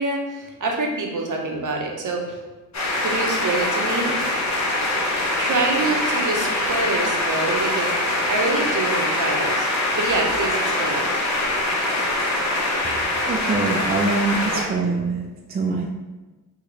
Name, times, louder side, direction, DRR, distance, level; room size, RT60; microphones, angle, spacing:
voice 1, 0.0-2.4 3.0-4.1 5.4-7.9 8.3-11.0, right 3 dB, 50° right, 1 dB, 0.9 m, -26 dB
sound 1, 2.7-14.6, left 1 dB, 40° left, 1.1 m, -23 dB
voice 2, 13.3-15.2 15.5-15.9, right 3 dB, 25° right, 1 dB, 0.4 m, -24 dB
2.9 x 2.9 x 3.9 m, 1.1 s
supercardioid pair, 55°, 41 cm